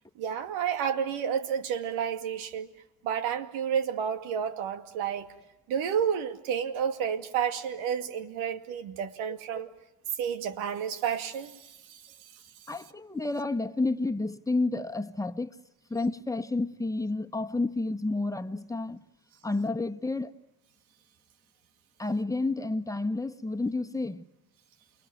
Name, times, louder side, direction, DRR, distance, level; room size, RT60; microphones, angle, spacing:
voice 1, 0.2-2.7 3.0-5.3 5.7-9.7 10.2-12.0, right 8 dB, 80° right, 2.4 m, -30 dB
voice 2, 12.7-15.6 15.9-19.0 19.4-20.3 22.0-24.2, left 2 dB, 5° left, 1.6 m, -30 dB
29.0 x 22.0 x 9.3 m
supercardioid pair, 65°, 48 cm